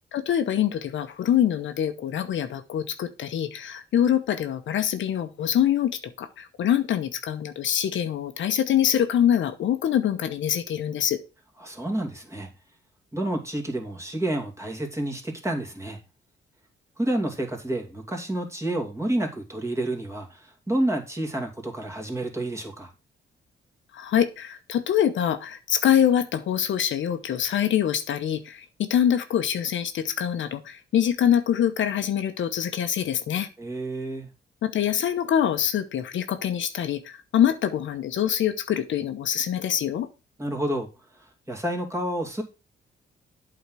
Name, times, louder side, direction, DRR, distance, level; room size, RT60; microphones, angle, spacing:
voice 1, 0.1-11.2 23.9-33.5 34.6-40.1, left 10 dB, 75° left, 8 dB, 0.9 m, -24 dB
voice 2, 11.6-12.5 13.1-16.0 17.0-22.9 33.6-34.3 40.4-40.9 41.5-42.4, right 1 dB, 15° right, 1 dB, 2.4 m, -29 dB
8.3 x 3.9 x 6.1 m, 0.30 s
cardioid pair, 85°, 20 cm